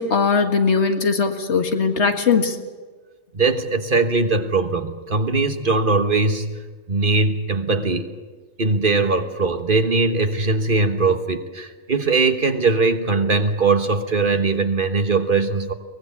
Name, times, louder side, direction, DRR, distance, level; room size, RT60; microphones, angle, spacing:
voice 1, 0.0-2.6, left 5 dB, 75° left, 6 dB, 2.0 m, -19 dB
voice 2, 3.3-8.1 8.6-15.7, right 3 dB, 50° right, 7 dB, 1.5 m, -20 dB
23.0 x 19.5 x 8.3 m, 1.4 s
omnidirectional pair, 1.2 m